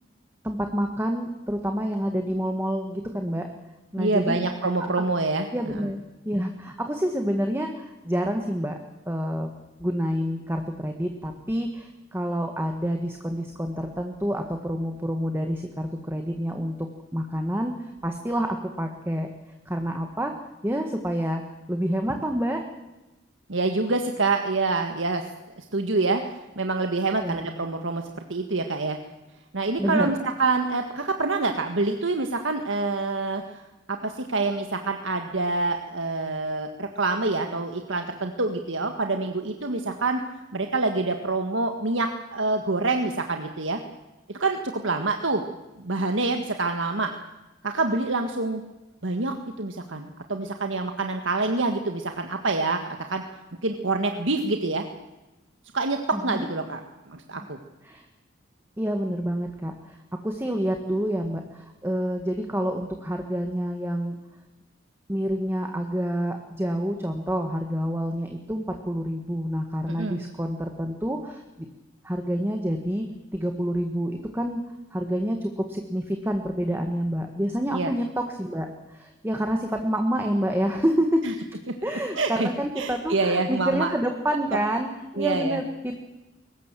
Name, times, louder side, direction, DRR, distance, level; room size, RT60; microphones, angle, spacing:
voice 1, 0.4-3.5 3.9-4.4 4.8-4.9 5.5-6.0 6.2-8.8 9.0-9.5 9.8-16.9 17.1-19.3 19.6-20.3 20.6-21.4 21.7-22.6 27.2-27.5 29.8-30.1 56.1-56.5 57.8-58.0 58.8-60.0 60.2-64.2 65.1-71.7 72.0-73.0 73.3-74.6 74.9-81.2 81.8-84.9 85.1-86.0, equal, 10° right, 4 dB, 1.6 m, -28 dB
voice 2, 4.0-5.8 23.5-25.3 25.6-26.2 26.5-28.0 28.3-29.0 29.5-33.6 33.9-40.2 40.5-43.8 44.4-45.4 45.8-47.1 47.6-48.6 49.0-53.2 53.6-54.8 55.7-56.8 57.1-57.6 69.9-70.2 77.7-77.9 81.2-81.3 82.1-82.5 82.8-83.9 85.2-85.6, right 3 dB, 75° right, 5 dB, 1.7 m, -26 dB
22.5 x 19.5 x 7.6 m, 1.1 s
head